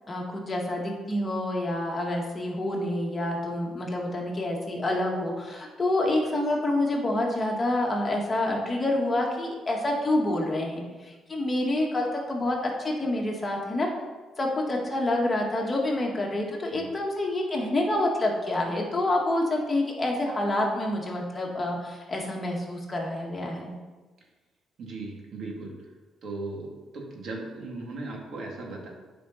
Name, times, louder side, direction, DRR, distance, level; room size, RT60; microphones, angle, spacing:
voice 1, 0.1-13.9 14.4-23.7, left 1 dB, 25° left, -1 dB, 1.9 m, -27 dB
voice 2, 24.8-25.7 26.2-28.9, right 2 dB, 65° right, -1 dB, 2.3 m, -37 dB
9.1 x 5.1 x 5.7 m, 1.3 s
cardioid pair, 90°, 0 cm